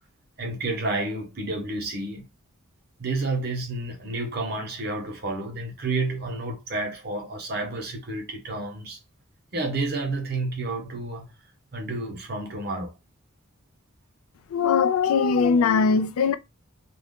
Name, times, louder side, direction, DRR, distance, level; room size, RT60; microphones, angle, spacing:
voice 1, 0.4-2.3 3.0-9.0 9.5-11.3 11.7-12.9, right 2 dB, 50° right, 0.8 m, -30 dB
voice 2, 14.5-16.4, left 5 dB, 85° left, 0.3 m, -20 dB
2.3 x 2.2 x 3.6 m
head